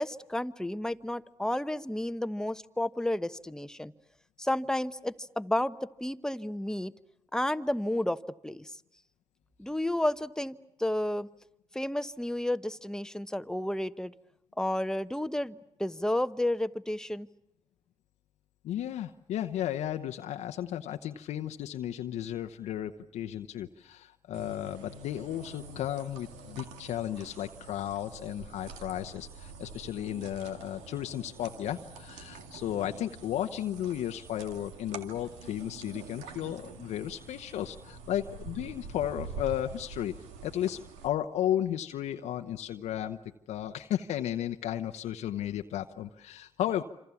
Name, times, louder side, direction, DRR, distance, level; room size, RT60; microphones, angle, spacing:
voice 1, 0.0-3.9 4.4-6.9 7.3-8.7 9.6-11.3 11.7-14.1 14.6-17.3, left 1 dB, 5° left, 11 dB, 1.0 m, -31 dB
voice 2, 18.6-40.1 40.4-43.2 43.5-46.8, left 11 dB, 75° left, 6 dB, 0.9 m, -34 dB
sound 1, 24.3-41.1, right 4 dB, 85° right, 2.1 m, -46 dB
27.0 x 26.5 x 7.2 m, 0.85 s
supercardioid pair, 50°, 12 cm